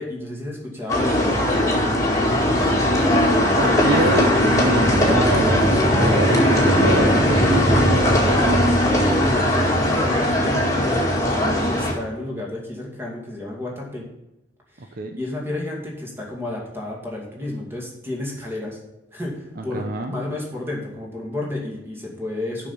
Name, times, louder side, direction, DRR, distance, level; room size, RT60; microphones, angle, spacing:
voice 1, 0.0-2.3 5.6-5.8 8.1-8.5 9.0-10.9 11.6-14.1 14.7-18.8 19.1-22.7, left 2 dB, 15° right, -2 dB, 2.4 m, -31 dB
sound 1, 0.9-11.9, left 1 dB, 20° left, 1.9 m, -18 dB
voice 2, 3.6-8.7 14.8-15.2 19.6-20.1, right 2 dB, 55° right, 5 dB, 0.7 m, -26 dB
7.1 x 5.8 x 7.0 m, 0.89 s
head